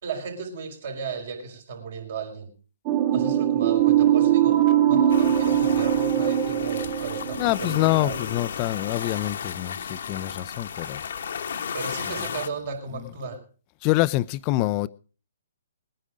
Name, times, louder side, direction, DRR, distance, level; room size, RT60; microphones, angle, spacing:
voice 1, 0.0-2.5 3.1-8.3 11.7-13.5, right 5 dB, 60° right, 5.2 m, -35 dB
sound 1, 2.9-8.1, right 11 dB, 40° right, 2.3 m, -21 dB
sound 2, 5.1-12.5, left 7 dB, 65° left, 1.3 m, -34 dB
voice 2, 7.4-11.0 13.8-14.9, left 18 dB, 35° left, 0.6 m, -25 dB
20.5 x 9.9 x 5.1 m
hypercardioid pair, 130°, 0 cm